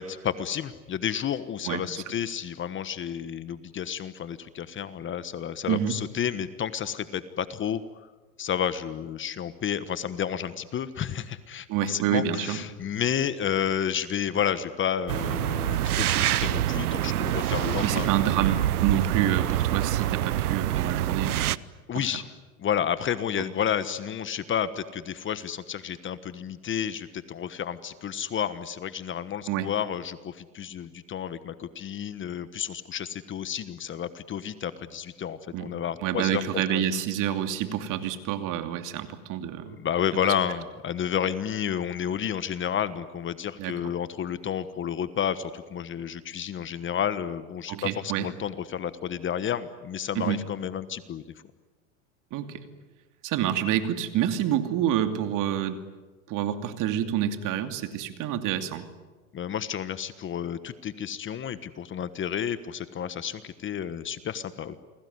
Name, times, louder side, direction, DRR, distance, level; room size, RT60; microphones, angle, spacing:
voice 1, 0.0-7.8 8.4-18.3 21.9-22.2 22.6-37.0 39.6-51.2 59.3-64.8, left 9 dB, 25° left, 13 dB, 1.3 m, -31 dB
voice 2, 1.7-2.0 5.7-6.0 11.7-12.6 17.8-21.5 21.9-22.0 29.5-29.7 35.5-35.7 36.0-39.8 43.6-43.8 47.7-48.3 50.1-50.5 52.3-52.6 53.2-55.8 56.3-58.8, right 10 dB, 45° right, 8 dB, 2.7 m, -28 dB
sound 1, 15.1-21.6, right 13 dB, 90° right, 0.9 m, -26 dB
29.0 x 21.0 x 9.6 m, 1.3 s
hypercardioid pair, 115°, 44 cm